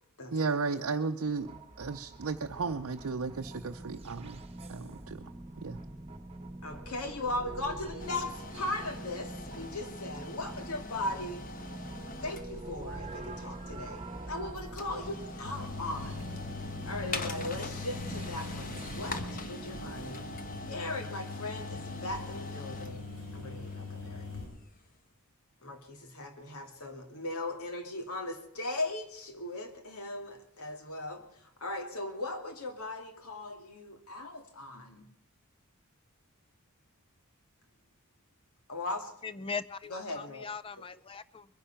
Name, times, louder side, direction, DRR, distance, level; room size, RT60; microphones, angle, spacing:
voice 1, 0.3-1.5 1.8-4.4 4.7-5.3 5.6-5.8, right 4 dB, 70° right, 4 dB, 0.6 m, -34 dB
sound 1, 1.3-20.1, right 1 dB, 30° right, 1.3 m, -44 dB
voice 2, 6.6-11.4 12.2-16.3 16.8-20.2 20.7-24.3 25.6-35.1 38.7-39.1 39.9-40.5 40.8-40.9, left 2 dB, 85° left, 5 dB, 2.2 m, -38 dB
sound 2, 8.0-24.9, left 3 dB, 40° left, 1.1 m, -44 dB
sound 3, 15.4-24.4, left 3 dB, 65° left, 5.2 m, -42 dB
voice 3, 39.2-41.5, left 5 dB, 25° left, 16 dB, 0.5 m, -40 dB
22.0 x 10.0 x 5.8 m, 0.78 s
head